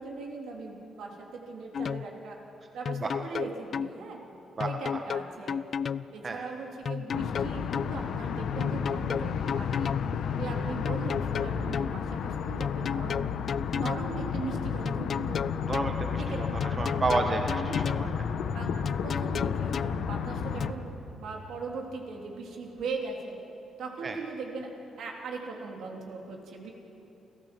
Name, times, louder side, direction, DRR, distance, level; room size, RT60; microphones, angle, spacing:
voice 1, 0.0-2.4 2.7-4.2 4.6-5.7 6.1-9.9 10.4-13.3 13.7-15.5 16.2-16.4 16.7-16.8 17.1-17.8 18.5-23.4 23.8-24.7 25.0-26.7, right 4 dB, 75° right, 1 dB, 3.3 m, -39 dB
sound 1, 1.7-2.1 2.9-3.9 4.6-6.1 6.9-7.9 8.6-10.1 10.9-11.9 12.6-14.1 14.9-15.9 16.6-18.1 18.9-20.0 20.6-20.7, left 7 dB, 55° left, 0.4 m, -32 dB
voice 2, 4.6-5.0 6.2-6.4 15.7-18.1 24.0-24.2, right 3 dB, 35° right, 4 dB, 1.4 m, -31 dB
sound 2, 7.1-20.7, left 7 dB, 75° left, 1.2 m, -32 dB
28.5 x 14.0 x 7.7 m, 3.0 s
cardioid pair, 95°, 0 cm